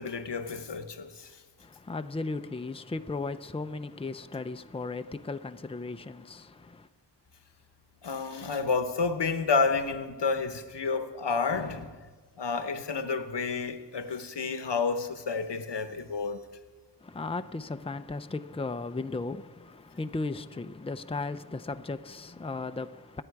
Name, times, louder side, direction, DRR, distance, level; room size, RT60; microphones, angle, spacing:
voice 1, 0.0-1.3 8.0-12.0 12.4-16.4, left 4 dB, 90° left, 1.0 m, -30 dB
voice 2, 1.6-6.9 17.0-23.2, left 3 dB, 15° left, 0.5 m, -36 dB
25.5 x 8.9 x 4.7 m
wide cardioid pair, 65°, 41 cm